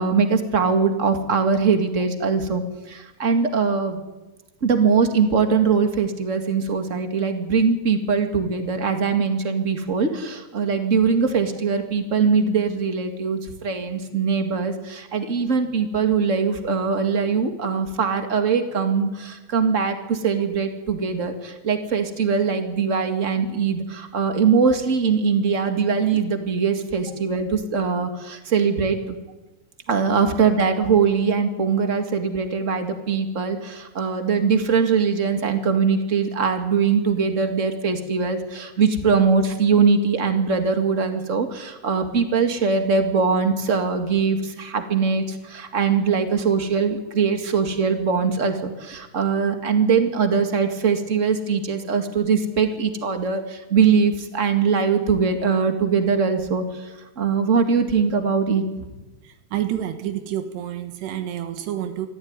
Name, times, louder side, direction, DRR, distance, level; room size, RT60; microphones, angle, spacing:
voice 1, 0.0-4.0 4.6-29.2 29.9-56.9 57.1-58.6, right 5 dB, 35° right, 6 dB, 1.3 m, -21 dB
voice 2, 59.3-62.1, right 11 dB, 90° right, 8 dB, 3.6 m, -29 dB
25.0 x 14.5 x 9.6 m, 1.1 s
omnidirectional pair, 4.7 m